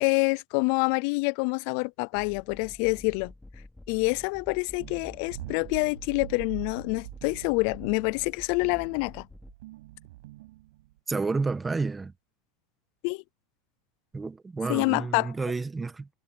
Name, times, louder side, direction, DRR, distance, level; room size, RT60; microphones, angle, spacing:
voice 1, 0.0-3.3 3.9-9.3 13.0-13.2 14.7-15.3, left 30 dB, 60° left, 0.4 m, -27 dB
sound 1, 2.1-9.5, left 2 dB, 5° left, 3.4 m, -48 dB
sound 2, 4.8-11.0, right 18 dB, 80° right, 6.4 m, -44 dB
voice 2, 11.1-12.1 14.1-16.1, right 4 dB, 15° right, 1.6 m, -30 dB
supercardioid pair, 130°, 0 cm